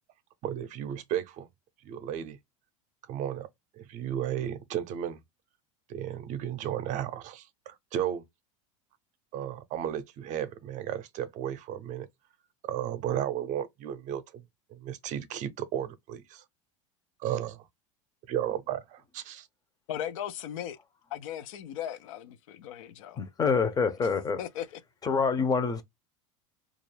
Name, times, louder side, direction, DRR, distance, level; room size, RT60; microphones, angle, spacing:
voice 1, 0.4-1.5 1.8-2.4 3.1-3.5 3.7-5.2 5.9-8.2 9.3-12.1 12.6-14.4 14.7-16.4 17.2-17.7 18.3-19.5, right 10 dB, 50° right, 0.5 m, -34 dB
voice 2, 19.9-20.8 21.1-23.2 24.4-24.8, left 10 dB, 80° left, 0.4 m, -37 dB
voice 3, 23.2-24.4 25.0-25.8, left 5 dB, 20° left, 0.5 m, -26 dB
2.4 x 2.0 x 3.1 m
hypercardioid pair, 100°, 17 cm